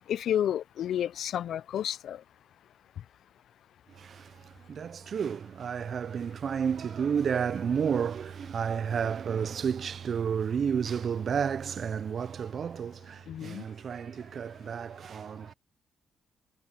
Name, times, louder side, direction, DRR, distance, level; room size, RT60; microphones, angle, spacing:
voice 1, 0.0-2.2 13.3-13.6, left 10 dB, 70° left, 0.4 m, -31 dB
voice 2, 3.9-15.5, right 7 dB, 55° right, 0.4 m, -31 dB
cardioid pair, 75°, 0 cm